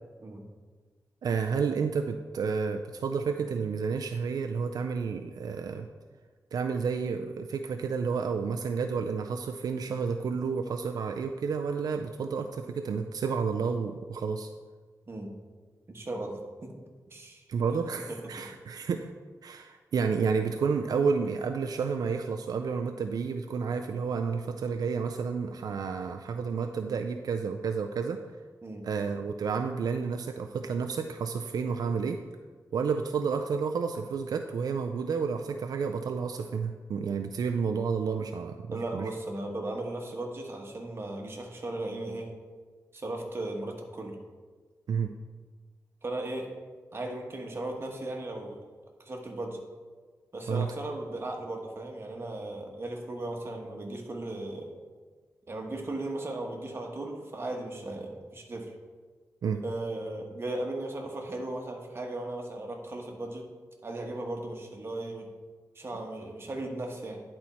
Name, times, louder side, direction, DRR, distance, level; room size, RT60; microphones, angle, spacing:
voice 1, 1.2-5.9 6.5-14.5 17.5-19.1 19.4-28.2 28.8-32.2 32.7-39.1 44.9-45.1 50.5-50.7 59.4-59.6, right 5 dB, 85° right, 5 dB, 0.4 m, -30 dB
voice 2, 15.9-16.8 17.1-17.4 18.1-18.2 28.6-28.9 38.7-42.3 42.9-44.2 46.0-46.5 46.9-48.6 49.0-49.6 50.3-54.7 55.5-58.7 59.6-63.5 63.8-65.3 65.7-67.2, right 2 dB, 40° right, 1 dB, 1.2 m, -36 dB
10.5 x 4.3 x 4.2 m, 1.4 s
wide cardioid pair, 115°, 6 cm